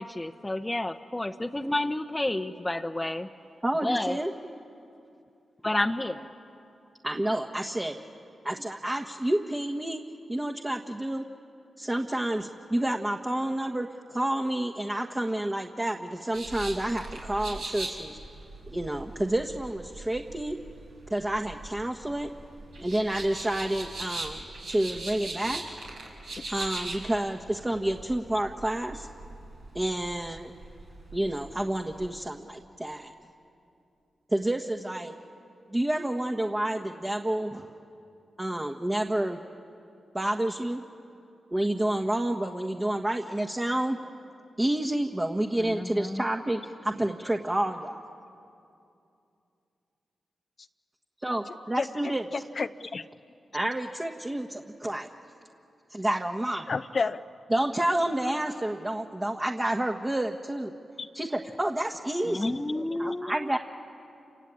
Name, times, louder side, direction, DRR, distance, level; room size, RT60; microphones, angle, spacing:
voice 1, 0.0-3.3 3.8-4.2 5.6-6.3 45.6-46.2 62.2-63.5, left 1 dB, 20° left, 4 dB, 0.9 m, -30 dB
voice 2, 3.6-4.3 7.0-7.9 8.4-10.0 10.3-11.2 11.8-18.2 18.7-20.6 21.1-22.3 22.8-24.4 24.7-25.6 26.5-29.1 29.7-30.5 31.1-33.1 34.3-35.1 35.7-37.7 38.4-39.4 40.1-40.8 41.5-44.0 44.6-48.0 51.2-52.2 53.5-55.1 55.9-56.6 57.5-60.7 61.1-62.6 63.0-63.6, right 1 dB, 25° right, 2 dB, 1.5 m, -29 dB
sound 1, 16.3-32.1, right 2 dB, 85° right, 4.9 m, -41 dB
voice 3, 51.5-51.9 52.3-53.0 56.7-57.2 61.0-61.1 62.3-63.2, left 4 dB, 55° left, 10 dB, 0.5 m, -32 dB
28.5 x 19.0 x 8.5 m, 2.6 s
supercardioid pair, 40°, 0 cm